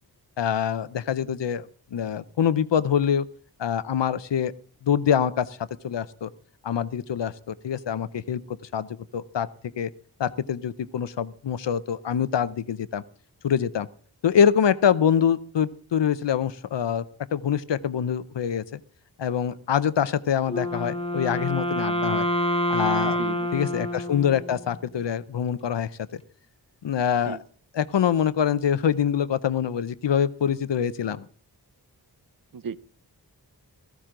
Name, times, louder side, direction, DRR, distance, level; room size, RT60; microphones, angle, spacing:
voice 1, 0.4-3.3 3.6-4.5 4.8-5.6 5.8-6.3 6.6-8.4 8.7-8.9 9.1-9.5 9.8-9.9 10.2-13.0 13.4-13.9 14.2-17.0 17.3-18.8 19.2-22.3 22.7-23.2 23.5-26.2 26.8-27.4 27.7-31.3, left 8 dB, 85° left, 15 dB, 0.7 m, -25 dB
Wind instrument woodwind instrument, 20.5-24.7, left 1 dB, 15° left, 1.1 m, -27 dB
voice 2, 23.0-23.5 27.3-27.4 32.5-32.8, right 6 dB, 55° right, 17 dB, 0.7 m, -34 dB
15.0 x 14.5 x 3.8 m, 0.44 s
wide cardioid pair, 80°, 42 cm